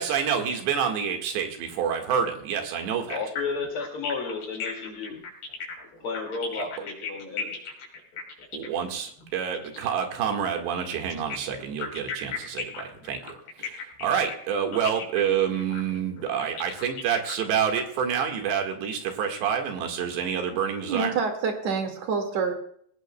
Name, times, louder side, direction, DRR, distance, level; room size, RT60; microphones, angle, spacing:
voice 1, 0.0-3.2 8.5-21.2, right 7 dB, 75° right, 4 dB, 3.8 m, -28 dB
sound 1, 3.1-9.9 11.1-17.8, left 6 dB, 70° left, 5.5 m, -36 dB
voice 2, 3.1-5.2 6.0-7.5, left 4 dB, 40° left, 2 dB, 2.3 m, -32 dB
voice 3, 20.9-22.5, right 5 dB, 50° right, 4 dB, 2.6 m, -27 dB
20.5 x 17.5 x 2.2 m, 0.64 s
omnidirectional pair, 5.1 m